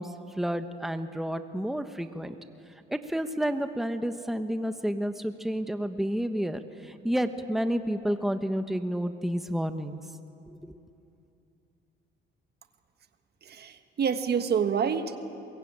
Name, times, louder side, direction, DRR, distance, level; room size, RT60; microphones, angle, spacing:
voice 1, 0.0-2.3 2.9-10.0 10.5-10.7, equal, ahead, 8 dB, 1.1 m, -30 dB
voice 2, 13.4-15.2, right 7 dB, 55° right, 8 dB, 1.5 m, -27 dB
23.5 x 22.0 x 8.9 m, 2.7 s
cardioid pair, 90°, 20 cm